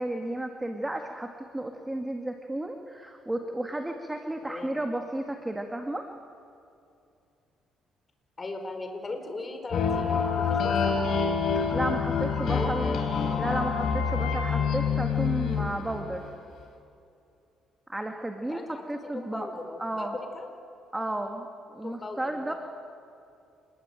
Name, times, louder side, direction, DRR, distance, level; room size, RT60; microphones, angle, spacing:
voice 1, 0.0-6.1 11.7-13.0 13.3-16.3 17.9-19.5 19.8-20.2 20.9-22.5, right 1 dB, 10° right, 4 dB, 2.0 m, -33 dB
voice 2, 8.4-10.2 10.5-11.0 12.4-12.8 18.5-18.8 19.1-20.5 21.8-22.5, left 2 dB, 25° left, 5 dB, 4.8 m, -38 dB
sound 1, 9.7-16.3, left 6 dB, 60° left, 4.5 m, -27 dB
27.5 x 21.0 x 9.1 m, 2.6 s
cardioid pair, 110°, 0 cm